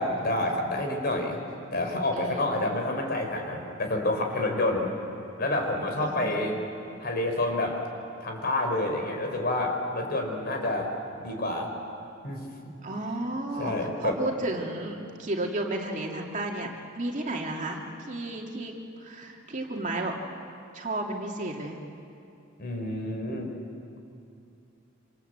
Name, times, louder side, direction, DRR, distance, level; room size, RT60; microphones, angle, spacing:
voice 1, 0.0-1.4 1.7-5.0 5.4-6.5 7.0-7.8 8.2-10.9 11.2-11.7 12.2-12.4 13.6-14.1 22.6-23.5, left 2 dB, 50° left, 3 dB, 4.5 m, -28 dB
voice 2, 2.1-2.7 6.0-6.5 12.8-17.8 18.1-18.7 19.0-20.2 20.7-21.8, right 2 dB, 40° right, 0 dB, 2.6 m, -33 dB
27.5 x 27.0 x 8.1 m, 2.6 s
head